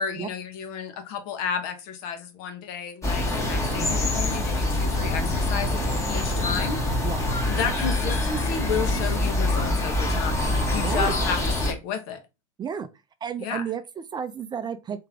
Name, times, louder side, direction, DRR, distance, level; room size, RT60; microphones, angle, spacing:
voice 1, 0.0-6.8 7.5-12.2 13.4-13.6, left 6 dB, 60° left, 1.0 m, -32 dB
sound 1, 3.0-11.7, left 1 dB, 15° left, 1.3 m, -25 dB
voice 2, 10.7-11.2 12.6-12.9 13.2-15.1, right 7 dB, 25° right, 0.5 m, -32 dB
3.3 x 2.9 x 3.5 m
hypercardioid pair, 100°, 17 cm